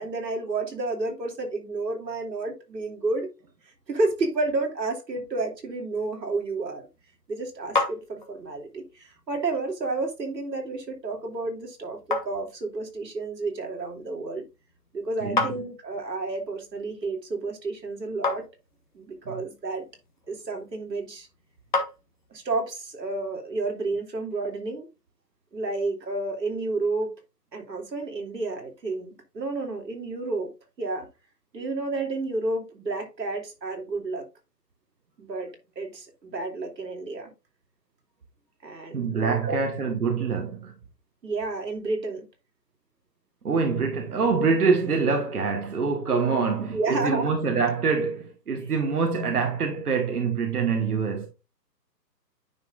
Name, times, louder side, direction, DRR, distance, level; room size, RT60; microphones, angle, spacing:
voice 1, 0.0-3.3 3.9-6.9 7.3-14.5 14.9-18.4 18.9-19.9 20.3-21.3 22.3-24.9 25.5-27.1 27.5-30.5 30.8-31.1 31.5-34.3 35.2-35.5 35.8-37.3 38.6-39.7 41.2-42.3 46.2-47.4, right 3 dB, 80° right, 2.9 m, -31 dB
sound 1, 6.8-22.6, left 3 dB, 30° left, 1.1 m, -36 dB
voice 2, 38.9-40.7 43.4-51.3, right 5 dB, 60° right, 1.6 m, -25 dB
9.6 x 6.0 x 2.5 m
hypercardioid pair, 170°, 50 cm